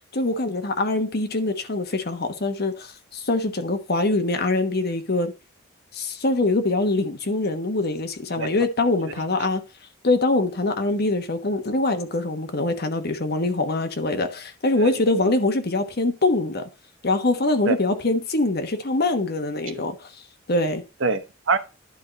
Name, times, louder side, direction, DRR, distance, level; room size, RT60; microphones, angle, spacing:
voice 1, 0.1-5.3 5.9-9.6 10.0-16.6 17.0-20.1 20.5-20.8, left 2 dB, 50° left, 1.2 m, -23 dB
voice 2, 14.8-15.3 17.6-17.8 19.7-19.8 21.0-21.6, right 4 dB, 65° right, 1.0 m, -25 dB
11.0 x 4.8 x 4.0 m
head